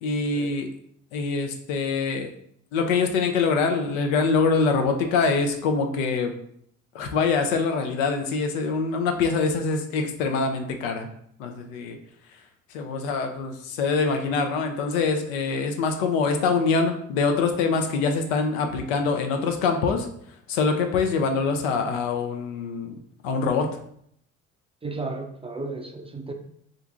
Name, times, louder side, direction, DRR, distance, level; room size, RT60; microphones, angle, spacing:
voice 1, 0.0-0.7 1.1-2.3 2.7-6.3 6.9-11.1 11.4-12.0 12.7-20.1 20.5-22.9 23.2-23.7, left 4 dB, 80° left, 5 dB, 0.6 m, -24 dB
voice 2, 24.8-26.3, right 3 dB, 15° right, 4 dB, 0.4 m, -34 dB
2.7 x 2.5 x 3.5 m, 0.67 s
hypercardioid pair, 55°, 38 cm